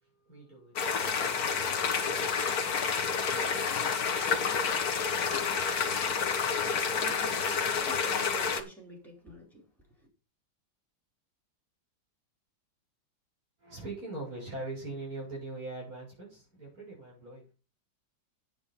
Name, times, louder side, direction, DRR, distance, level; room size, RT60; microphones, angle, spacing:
voice 1, 0.0-6.1 13.6-17.5, right 2 dB, 50° right, 7.2 m, -44 dB
sound 1, 0.8-8.6, left 6 dB, 55° left, 1.7 m, -29 dB
voice 2, 7.0-9.6, right 1 dB, ahead, 4.6 m, -46 dB
9.0 x 8.9 x 5.6 m
omnidirectional pair, 2.1 m